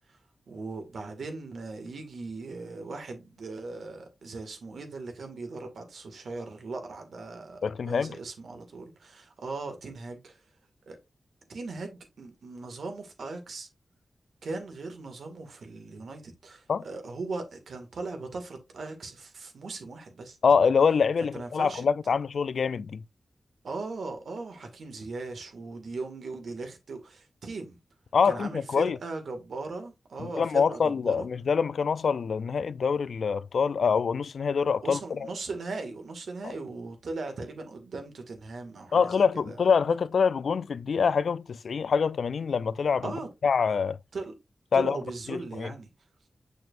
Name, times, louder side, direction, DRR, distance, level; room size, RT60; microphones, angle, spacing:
voice 1, 0.5-10.4 10.9-11.0 11.5-13.7 14.4-20.4 21.3-21.8 23.6-27.8 28.2-31.3 34.8-39.6 43.0-43.3 44.1-44.3 44.7-45.9, right 3 dB, 85° right, 1.9 m, -39 dB
voice 2, 7.6-8.2 16.7-16.8 20.4-23.0 28.1-29.0 30.2-35.3 38.9-43.1 43.4-44.0 44.7-45.0 45.3-45.7, left 6 dB, 80° left, 0.3 m, -25 dB
6.8 x 6.3 x 2.5 m
wide cardioid pair, 75°, 0 cm